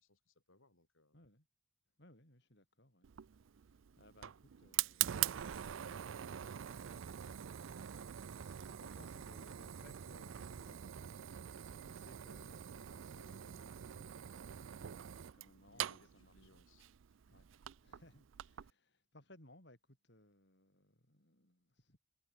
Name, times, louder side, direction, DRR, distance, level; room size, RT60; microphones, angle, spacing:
voice 1, 0.0-1.2 13.0-13.4 15.7-17.6, left 2 dB, 85° left, 7.0 m, -70 dB
voice 2, 1.1-1.4 2.0-3.1 3.6-15.8 16.1-16.6 17.3-22.0, left 1 dB, 55° left, 7.0 m, -65 dB
Fire, 3.0-18.7, right 11 dB, 75° right, 0.4 m, -44 dB
head